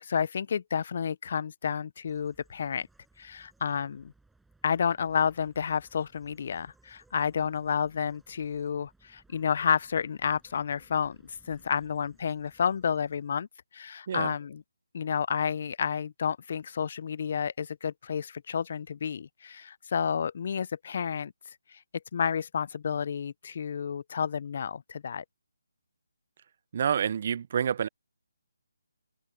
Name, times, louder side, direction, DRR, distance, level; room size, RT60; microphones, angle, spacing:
voice 1, 0.0-2.9 3.2-4.1 4.6-13.5 13.7-14.6 14.9-21.3 22.1-25.2, left 7 dB, 50° left, 0.5 m, -30 dB
sound 1, 2.1-13.3, right 3 dB, 5° right, 5.7 m, -64 dB
voice 2, 26.7-27.9, right 8 dB, 45° right, 0.6 m, -28 dB
open air
figure-of-eight pair, 160°, 0 cm